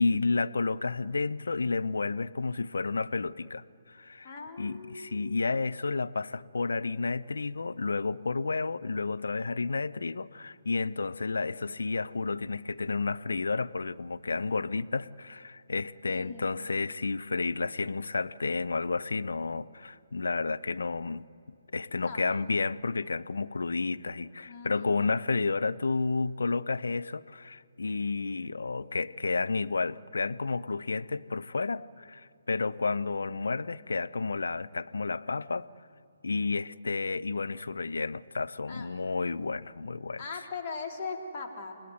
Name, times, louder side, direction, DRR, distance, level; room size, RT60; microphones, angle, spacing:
voice 1, 0.0-21.2 21.7-35.7 36.2-40.4, left 4 dB, 65° left, 0.7 m, -31 dB
voice 2, 4.2-5.5 16.0-16.7 22.0-22.4 24.5-25.0 38.7-38.9 40.2-41.8, left 4 dB, 30° left, 3.6 m, -40 dB
29.5 x 18.0 x 9.6 m
figure-of-eight pair, 140°, 0 cm